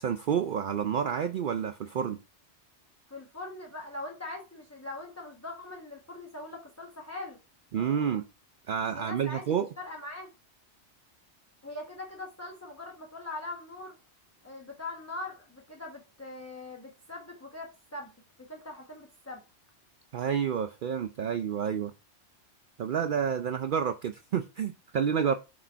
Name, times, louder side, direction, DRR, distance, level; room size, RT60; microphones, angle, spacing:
voice 1, 0.0-2.2 7.7-8.2 8.7-9.7 20.1-21.9 22.8-25.3, right 7 dB, 60° right, 0.6 m, -29 dB
voice 2, 3.1-7.4 8.9-10.3 11.6-14.0 14.4-18.1 18.4-19.4, left 2 dB, 15° left, 1.0 m, -41 dB
6.2 x 4.2 x 4.5 m
omnidirectional pair, 1.2 m